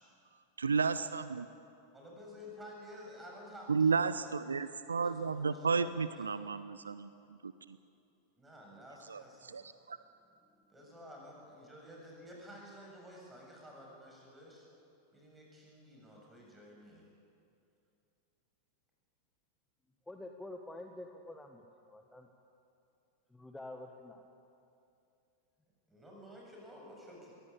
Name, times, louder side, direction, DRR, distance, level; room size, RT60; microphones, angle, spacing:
voice 1, 0.6-1.5 3.7-7.8 9.1-10.0, right 5 dB, 75° right, 15 dB, 0.6 m, -33 dB
voice 2, 1.9-4.3 4.6-4.7 5.0-6.3 8.3-9.6 10.7-14.6 15.1-17.0 25.9-27.3, equal, 10° right, -1 dB, 7.4 m, -52 dB
voice 3, 20.1-22.3 23.3-24.2, left 1 dB, 5° left, 4 dB, 1.3 m, -48 dB
22.5 x 17.0 x 8.6 m, 2.6 s
figure-of-eight pair, 90°, 0 cm